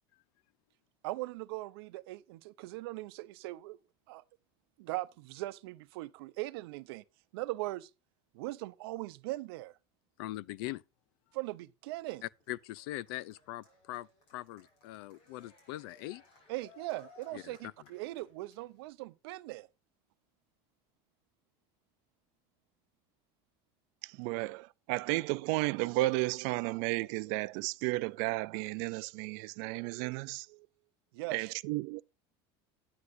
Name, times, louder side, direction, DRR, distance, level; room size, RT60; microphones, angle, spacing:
voice 1, 1.0-3.8 4.1-4.2 4.8-7.0 7.3-7.9 8.3-9.7 11.3-12.2 16.5-19.7 31.1-31.5, right 19 dB, 80° right, 0.8 m, -40 dB
voice 2, 10.2-10.8 12.5-16.2 17.3-17.7, left 16 dB, 70° left, 0.5 m, -42 dB
Cheering, 11.9-18.9, left 3 dB, 45° left, 5.7 m, -61 dB
voice 3, 24.0-30.7 31.3-32.0, right 21 dB, 55° right, 0.5 m, -33 dB
9.9 x 9.5 x 2.7 m
cardioid pair, 180°, 13 cm